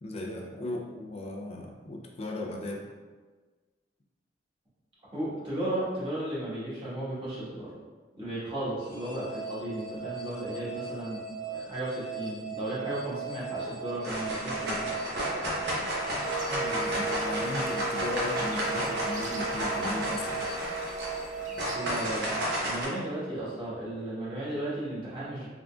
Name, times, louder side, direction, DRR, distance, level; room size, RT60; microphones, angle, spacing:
voice 1, 0.0-2.9 15.7-15.9 16.5-20.5, left 1 dB, 35° left, 0 dB, 0.4 m, -36 dB
voice 2, 5.1-7.7 8.1-14.9 21.7-25.5, right 1 dB, 30° right, -10 dB, 1.4 m, -35 dB
sound 1, 8.8-23.2, right 5 dB, 20° left, 0.9 m, -39 dB
sound 2, 13.3-13.7 14.0-22.8, equal, 60° right, 0.9 m, -32 dB
sound 3, 16.2-21.7, right 2 dB, 45° right, 0.5 m, -39 dB
3.7 x 3.5 x 2.3 m, 1.4 s
head